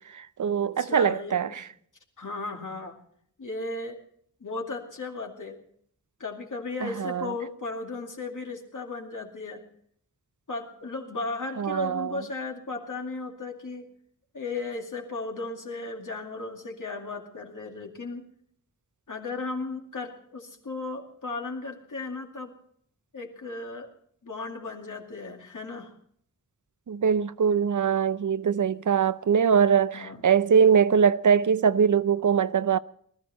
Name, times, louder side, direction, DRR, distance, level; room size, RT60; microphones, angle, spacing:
voice 1, 0.0-1.7 6.8-7.3 11.6-12.1 26.9-32.8, right 7 dB, 65° right, 0.6 m, -22 dB
voice 2, 0.6-1.6 2.2-3.0 3.4-4.0 4.4-5.6 6.2-9.6 10.5-13.9 14.3-18.2 19.1-22.5 23.1-23.9 24.2-25.9 29.9-30.2, left 3 dB, 70° left, 2.4 m, -35 dB
20.0 x 13.0 x 4.3 m
wide cardioid pair, 50°, 32 cm